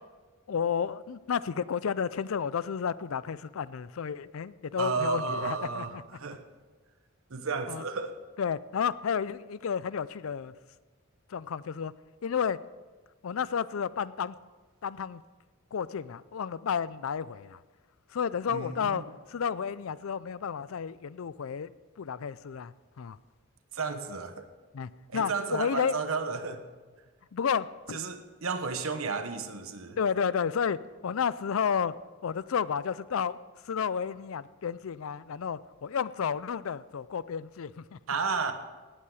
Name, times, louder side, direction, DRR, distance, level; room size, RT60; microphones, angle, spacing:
voice 1, 0.5-6.0 7.7-7.8 8.4-10.5 11.3-11.9 12.2-12.6 13.2-14.4 14.8-15.2 15.7-17.6 18.1-19.0 19.3-21.7 22.0-23.2 24.7-25.9 27.3-28.0 30.0-31.9 32.2-33.4 33.6-38.0, left 7 dB, 80° left, 18 dB, 0.4 m, -31 dB
voice 2, 4.8-6.4 7.3-8.2 18.5-19.1 23.7-24.5 25.1-26.7 27.9-30.0 38.1-38.5, right 4 dB, 85° right, 8 dB, 1.2 m, -33 dB
18.0 x 8.6 x 4.9 m, 1.3 s
head